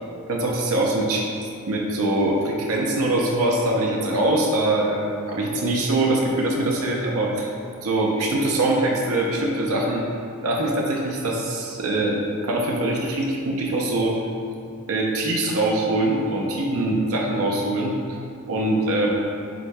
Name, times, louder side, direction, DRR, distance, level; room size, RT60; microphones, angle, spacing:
voice 1, 0.3-1.3 1.7-7.5 7.8-10.0 10.4-14.2 14.9-17.9 18.5-19.1, right 1 dB, 75° right, -1 dB, 0.5 m, -23 dB
7.6 x 2.7 x 2.2 m, 2.5 s
head